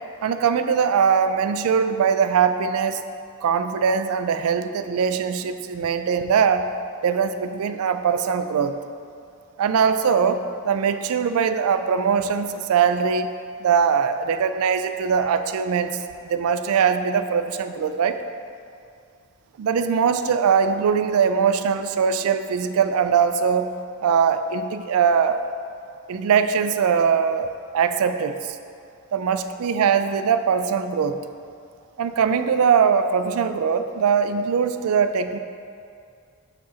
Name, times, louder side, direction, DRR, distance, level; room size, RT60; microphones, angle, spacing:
voice 1, 0.2-3.0 3.4-6.7 7.0-8.8 9.6-13.3 13.6-16.0 16.3-18.2 19.6-23.7 24.0-25.4 26.1-28.6 29.1-31.2 32.0-35.4, right 6 dB, 75° right, 10 dB, 0.3 m, -21 dB
7.0 x 6.2 x 2.8 m, 2.4 s
head